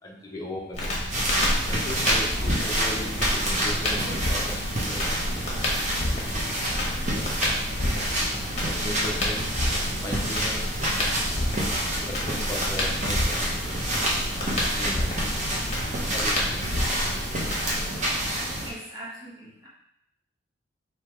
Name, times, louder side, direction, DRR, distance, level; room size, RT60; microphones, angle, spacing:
voice 1, 0.0-1.1 1.6-5.2 8.6-9.6 10.0-11.3 12.0-13.5 14.7-15.4 16.1-16.6, left 1 dB, 20° left, -3 dB, 0.7 m, -37 dB
Crackle, 0.7-17.9, left 1 dB, 35° left, 1.1 m, -30 dB
sound 1, 1.1-18.7, right 1 dB, 35° right, 0.9 m, -28 dB
voice 2, 18.6-19.7, right 1 dB, 20° right, -7 dB, 1.3 m, -42 dB
3.4 x 2.9 x 4.4 m, 0.78 s
head